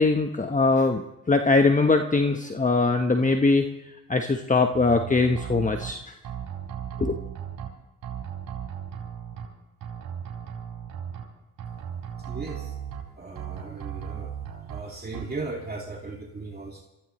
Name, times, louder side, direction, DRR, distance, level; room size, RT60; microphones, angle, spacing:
voice 1, 0.0-3.7 4.1-6.0 7.0-7.2, left 3 dB, 20° left, 5 dB, 1.2 m, -22 dB
sound 1, 4.7-5.9 6.2-7.7 8.0-9.5 9.8-11.2 11.6-13.0 13.4-14.8 15.1-15.2, right 9 dB, 70° right, 3.6 m, -36 dB
voice 2, 12.3-12.7 13.2-14.3 14.7-16.8, right 3 dB, 25° right, 0 dB, 2.7 m, -37 dB
23.5 x 15.5 x 3.2 m, 0.94 s
supercardioid pair, 55°, 36 cm